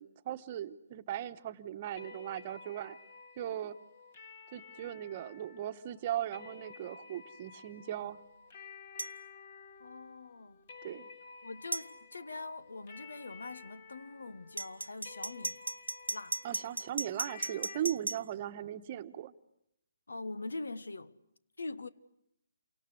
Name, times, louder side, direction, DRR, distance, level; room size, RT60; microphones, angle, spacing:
voice 1, 0.0-3.0 3.4-3.8 4.5-8.2 10.8-11.1 16.4-19.3, right 11 dB, 35° right, 1.2 m, -38 dB
sound 1, 2.0-17.8, left 5 dB, 40° left, 2.9 m, -53 dB
sound 2, 9.0-9.1 11.7-11.9 14.6-18.2, right 2 dB, 85° right, 1.3 m, -36 dB
voice 2, 9.8-10.6 11.4-15.6 16.1-16.4 20.1-21.2 21.6-21.9, left 3 dB, 75° left, 1.3 m, -43 dB
28.5 x 25.0 x 8.1 m
figure-of-eight pair, 140°, 0 cm